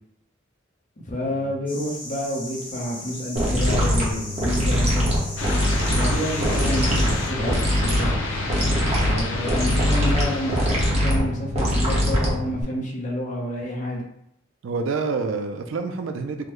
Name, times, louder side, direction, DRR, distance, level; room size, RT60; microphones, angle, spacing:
voice 1, 1.1-5.1 6.0-8.2 9.0-14.0, left 1 dB, 40° left, -2 dB, 0.7 m, -29 dB
sound 1, 1.7-7.3, left 1 dB, 10° left, 0.9 m, -38 dB
sound 2, 3.4-12.6, equal, 35° right, 0.9 m, -22 dB
sound 3, 5.4-10.9, left 2 dB, 80° left, 0.6 m, -30 dB
voice 2, 14.6-16.5, right 4 dB, 80° right, 6 dB, 0.4 m, -28 dB
3.6 x 2.1 x 3.0 m, 0.78 s
head